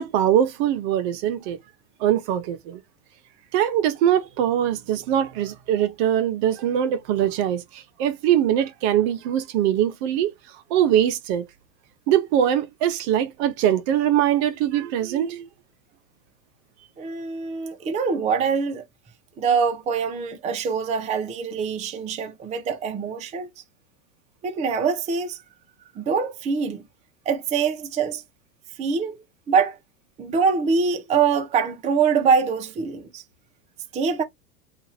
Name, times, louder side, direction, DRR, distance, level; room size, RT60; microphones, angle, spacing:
voice 1, 0.0-1.6 2.0-2.8 3.5-10.3 10.7-11.4 12.1-15.5, right 10 dB, 45° right, 0.7 m, -22 dB
voice 2, 17.0-18.8 19.4-23.5 24.4-25.4 26.0-26.8 27.3-28.2 28.8-29.2 29.5-29.8 30.2-33.2 33.9-34.2, right 5 dB, 15° right, 0.6 m, -24 dB
2.8 x 2.4 x 4.1 m
hypercardioid pair, 125°, 46 cm